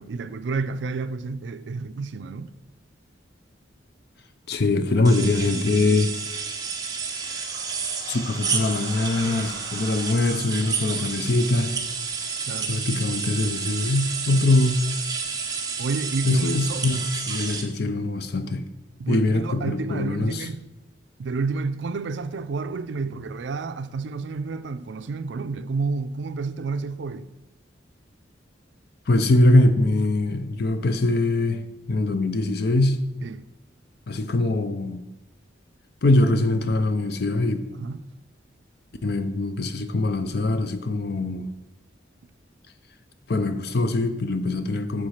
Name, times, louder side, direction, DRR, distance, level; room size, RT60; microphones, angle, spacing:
voice 1, 0.0-2.5 12.4-12.8 15.8-16.8 19.0-20.7 21.2-27.3 33.2-33.4 37.7-38.0, right 4 dB, 70° right, 0.4 m, -30 dB
voice 2, 4.5-6.1 8.1-11.7 12.7-14.9 16.2-17.0 17.3-18.6 19.1-20.5 29.1-31.6 31.9-33.0 34.1-35.0 36.0-37.6 39.0-41.5 43.3-45.1, left 2 dB, 60° left, 0.6 m, -22 dB
sound 1, 5.0-17.6, right 5 dB, 20° right, 0.8 m, -30 dB
sound 2, 7.0-13.2, right 2 dB, 40° right, 1.1 m, -44 dB
7.8 x 3.7 x 5.8 m
head